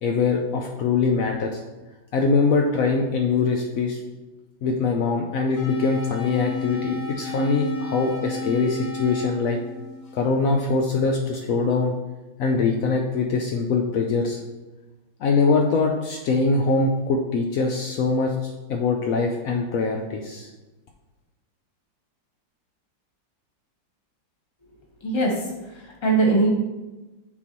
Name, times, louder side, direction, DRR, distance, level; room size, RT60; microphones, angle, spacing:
voice 1, 0.0-1.6 2.1-4.0 4.6-9.6 10.1-11.9 12.4-14.4 15.2-20.5, left 4 dB, 85° left, 2 dB, 0.7 m, -23 dB
sound 1, 5.6-10.6, left 2 dB, 60° left, 1.4 m, -32 dB
voice 2, 25.0-25.3 25.7-26.5, right 3 dB, 20° left, -1 dB, 0.9 m, -21 dB
9.4 x 3.9 x 3.0 m, 1.1 s
omnidirectional pair, 2.1 m